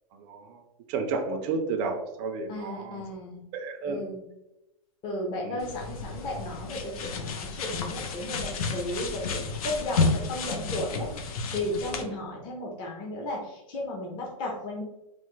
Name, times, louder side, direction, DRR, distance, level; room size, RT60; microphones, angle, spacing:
voice 1, 0.1-0.6 0.9-3.1 3.5-4.0 5.4-5.6 12.0-12.1, right 4 dB, 35° right, 4 dB, 0.4 m, -32 dB
voice 2, 2.5-3.4 3.9-4.2 5.0-14.8, left 1 dB, 25° left, -2 dB, 0.6 m, -34 dB
sound 1, 5.6-12.0, left 4 dB, 80° left, 0.5 m, -31 dB
3.2 x 2.0 x 3.0 m, 0.89 s
supercardioid pair, 155°, 18 cm